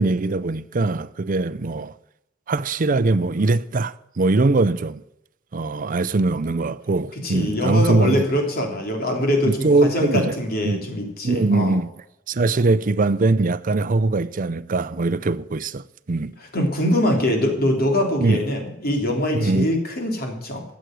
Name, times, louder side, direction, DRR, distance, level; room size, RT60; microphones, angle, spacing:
voice 1, 0.0-1.9 2.5-5.0 5.5-8.3 9.4-10.4 10.6-10.9 11.2-11.9 12.3-15.8 16.1-16.3 18.2-18.4 19.3-19.7, right 3 dB, 45° right, 0.5 m, -21 dB
voice 2, 7.2-11.8 16.4-20.6, left 1 dB, 50° left, 3.4 m, -23 dB
13.5 x 8.2 x 7.7 m
head